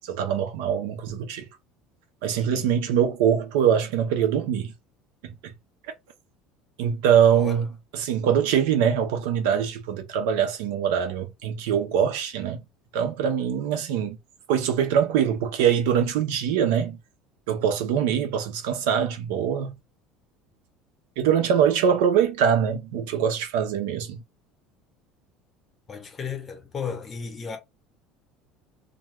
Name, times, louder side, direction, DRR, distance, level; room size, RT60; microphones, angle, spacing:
voice 1, 0.1-1.5 2.2-4.7 5.2-5.5 6.8-7.7 7.9-12.6 12.9-14.2 14.5-17.0 17.5-19.8 21.2-24.2, right 8 dB, 90° right, 0.7 m, -23 dB
voice 2, 7.3-7.6 25.9-27.6, left 6 dB, 20° left, 0.7 m, -34 dB
2.3 x 2.3 x 3.0 m
cardioid pair, 175°, 0 cm